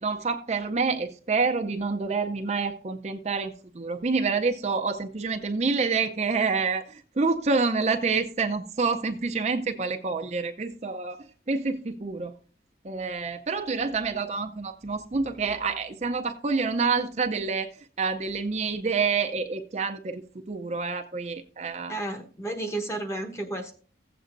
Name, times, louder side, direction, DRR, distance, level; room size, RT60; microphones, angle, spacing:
voice 1, 0.0-12.3 12.8-22.0, right 4 dB, 40° right, 0.5 m, -28 dB
voice 2, 21.9-23.7, right 2 dB, 15° left, 1.0 m, -32 dB
16.0 x 7.9 x 2.5 m
head